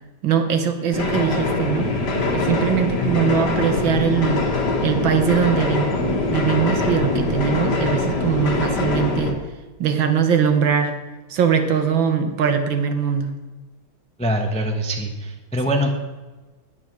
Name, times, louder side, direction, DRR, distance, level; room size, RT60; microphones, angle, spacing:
voice 1, 0.2-1.9 2.3-4.5 4.8-9.4 9.8-11.0 11.3-13.3, right 7 dB, 65° right, 7 dB, 1.8 m, -21 dB
sound 1, 0.9-9.3, left 2 dB, 50° left, 2.1 m, -23 dB
voice 2, 14.2-15.9, equal, 5° left, 3 dB, 0.7 m, -23 dB
10.5 x 9.4 x 6.2 m, 1.2 s
omnidirectional pair, 2.4 m